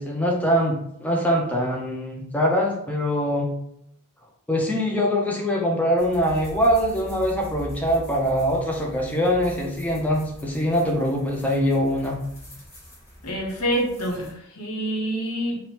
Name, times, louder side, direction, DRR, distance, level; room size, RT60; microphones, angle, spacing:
voice 1, 0.0-3.5 4.5-12.2, equal, 5° left, -2 dB, 0.3 m, -23 dB
sound 1, 6.0-14.3, equal, 30° left, 1.3 m, -42 dB
voice 2, 13.2-15.6, right 1 dB, 80° left, 0 dB, 0.7 m, -27 dB
3.1 x 2.0 x 2.8 m, 0.76 s
head